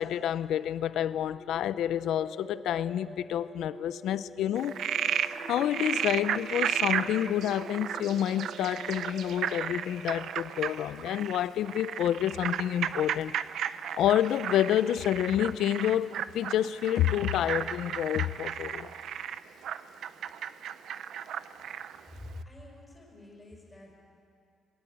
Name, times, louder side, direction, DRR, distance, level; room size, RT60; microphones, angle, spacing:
voice 1, 0.0-4.8 5.1-5.2 5.5-13.3 13.9-18.9, left 11 dB, 80° left, 0.6 m, -28 dB
sound 1, 1.3-13.1, right 1 dB, 40° right, 3.9 m, -47 dB
Frog, 4.5-22.0, right 9 dB, 65° right, 0.6 m, -34 dB
voice 2, 22.1-24.0, left 1 dB, 10° left, 5.1 m, -47 dB
21.0 x 18.0 x 8.8 m
cardioid pair, 175°, 0 cm